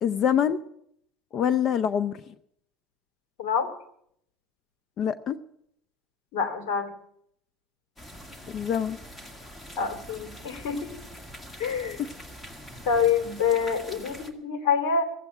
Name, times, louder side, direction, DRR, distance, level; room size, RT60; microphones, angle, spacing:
voice 1, 0.0-0.6 1.3-2.3 5.0-5.4 8.5-9.0, left 8 dB, 45° left, 16 dB, 0.6 m, -25 dB
voice 2, 6.3-6.9 9.8-10.9 11.6-12.0 12.8-15.0, left 6 dB, 70° left, 7 dB, 3.0 m, -26 dB
sound 1, 8.0-14.3, equal, 15° left, 2.1 m, -44 dB
15.5 x 8.4 x 9.0 m, 0.73 s
supercardioid pair, 100°, 0 cm